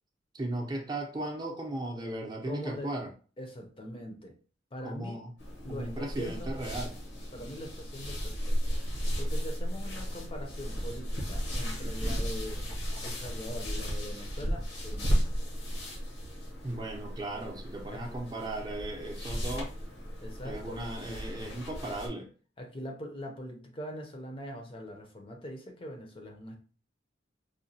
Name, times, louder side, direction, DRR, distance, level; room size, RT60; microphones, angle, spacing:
voice 1, 0.3-3.1 4.8-5.3 5.7-7.0 11.6-12.2 16.6-19.7 20.4-22.3, right 1 dB, 20° right, 0.6 m, -37 dB
voice 2, 2.4-2.9 3.4-4.4 4.7-5.2 5.6-6.5 7.3-12.7 13.0-15.5 17.9-18.2 20.2-20.8 22.6-26.6, equal, 30° left, 0.5 m, -42 dB
sound 1, 5.4-22.1, equal, 85° left, 1.1 m, -34 dB
4.9 x 2.2 x 2.7 m
head